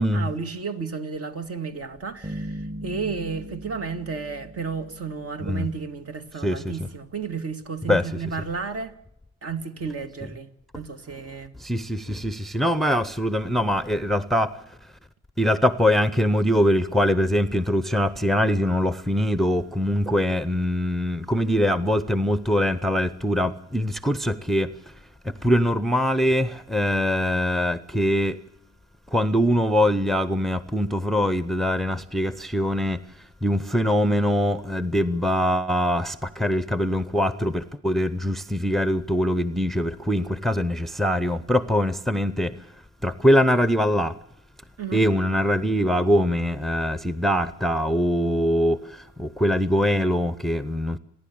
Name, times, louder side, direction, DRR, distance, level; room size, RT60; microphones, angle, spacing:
voice 1, 0.0-8.9 9.4-11.6 44.8-45.0, right 5 dB, 50° right, 2.2 m, -32 dB
sound 1, 2.2-5.6, right 1 dB, 25° right, 2.5 m, -38 dB
voice 2, 6.4-6.7 7.9-8.0 11.6-14.5 15.4-24.7 25.4-28.4 29.1-33.0 33.4-42.6 43.0-44.1 44.9-48.8 49.2-51.0, equal, ahead, 0.8 m, -23 dB
29.0 x 11.0 x 8.6 m
cardioid pair, 90°, 30 cm